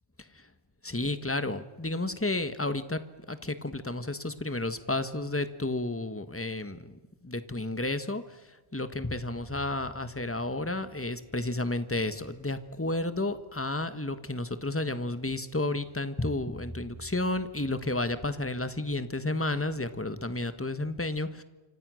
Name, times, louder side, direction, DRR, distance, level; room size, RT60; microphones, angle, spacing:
voice 1, 0.8-3.0 3.3-6.9 7.2-8.2 8.7-21.4, left 2 dB, 10° left, 11 dB, 1.4 m, -31 dB
29.0 x 26.0 x 6.4 m, 1.1 s
omnidirectional pair, 1.2 m